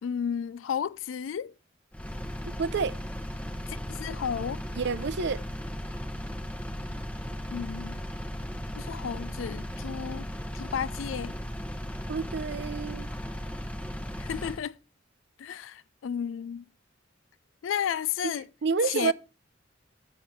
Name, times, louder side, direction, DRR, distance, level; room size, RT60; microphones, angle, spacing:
voice 1, 0.0-1.5 3.7-4.6 7.5-8.0 8.8-10.3 10.5-11.3 14.2-14.8 15.4-16.6 17.6-18.5 18.8-19.1, left 8 dB, 85° left, 0.4 m, -33 dB
Engine, 1.9-14.6, equal, 5° left, 0.9 m, -36 dB
voice 2, 2.6-2.9 4.8-5.4 12.1-13.1 18.2-18.3 18.6-19.1, right 5 dB, 65° right, 0.5 m, -28 dB
8.7 x 6.4 x 5.4 m
head